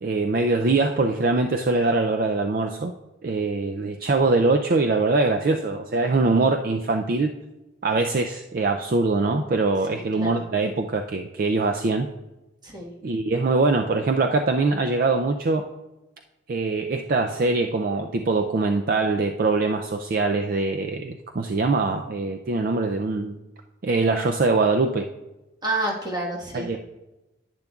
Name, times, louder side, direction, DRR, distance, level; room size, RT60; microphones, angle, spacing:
voice 1, 0.0-2.9 3.2-7.3 7.8-12.1 13.0-15.6 16.5-23.4 23.8-25.1 26.5-26.8, right 3 dB, 45° right, 5 dB, 0.4 m, -23 dB
voice 2, 9.9-10.3 12.6-13.0 25.6-26.8, right 2 dB, 20° right, -2 dB, 1.4 m, -29 dB
10.5 x 9.8 x 2.4 m, 1.0 s
head